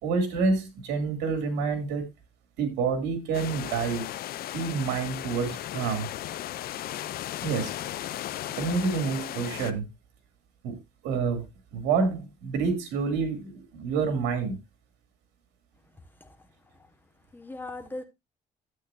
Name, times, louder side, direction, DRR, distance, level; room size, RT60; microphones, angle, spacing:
voice 1, 0.0-2.0 2.6-4.0 4.5-6.1 7.4-7.7 8.6-9.9 10.6-10.8 11.0-11.5 11.7-14.6, right 5 dB, 90° right, 2.6 m, -28 dB
sound 1, 3.3-9.7, left 13 dB, 65° left, 0.7 m, -36 dB
voice 2, 17.3-18.0, left 2 dB, 10° left, 1.5 m, -40 dB
11.5 x 8.4 x 2.6 m
cardioid pair, 110°, 17 cm